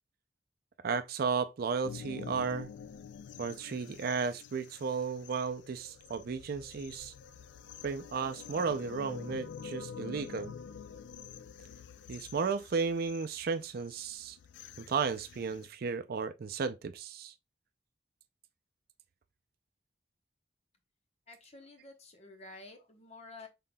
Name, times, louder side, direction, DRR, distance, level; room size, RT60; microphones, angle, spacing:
voice 1, 0.8-2.7 3.4-7.1 7.8-10.5 12.1-14.4 14.8-17.3, right 5 dB, 55° right, 0.4 m, -34 dB
sound 1, 1.8-15.7, left 7 dB, 75° left, 0.3 m, -48 dB
voice 2, 21.3-23.5, left 2 dB, 35° left, 0.9 m, -51 dB
5.6 x 3.7 x 2.2 m
head